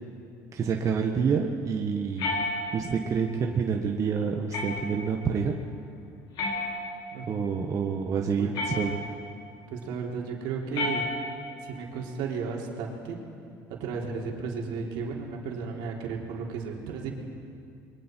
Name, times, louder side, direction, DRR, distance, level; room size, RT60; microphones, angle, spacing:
voice 1, 0.5-5.6 7.2-9.0, right 6 dB, 40° right, 1 dB, 1.5 m, -28 dB
sound 1, 2.2-3.1 4.5-5.1 6.4-7.2 8.5-9.3 10.7-11.6, left 2 dB, 70° left, 5.7 m, -32 dB
voice 2, 9.7-11.1 11.6-13.2 13.7-17.1, right 5 dB, 75° right, -1 dB, 3.5 m, -34 dB
29.5 x 23.0 x 4.7 m, 2.5 s
supercardioid pair, 100°, 8 cm